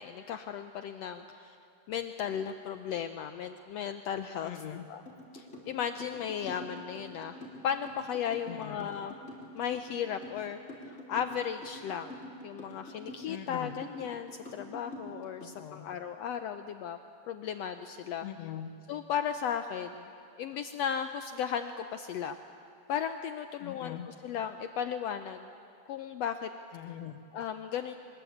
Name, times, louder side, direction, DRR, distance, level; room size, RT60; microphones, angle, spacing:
voice 1, 0.0-1.6 1.9-4.5 4.9-5.0 5.3-9.1 9.5-12.2 12.4-17.0 17.3-18.3 18.9-20.1 20.4-22.4 22.9-25.5 25.9-26.5 27.3-27.9, left 8 dB, 85° left, 8 dB, 1.4 m, -35 dB
voice 2, 4.4-4.9 8.5-8.9 13.3-13.8 15.4-15.9 18.2-18.7 23.6-24.1 26.7-27.2, left 11 dB, 65° left, 9 dB, 2.0 m, -42 dB
sound 1, 5.1-15.6, left 1 dB, 20° left, 4.1 m, -46 dB
23.0 x 21.5 x 8.6 m, 2.6 s
omnidirectional pair, 3.8 m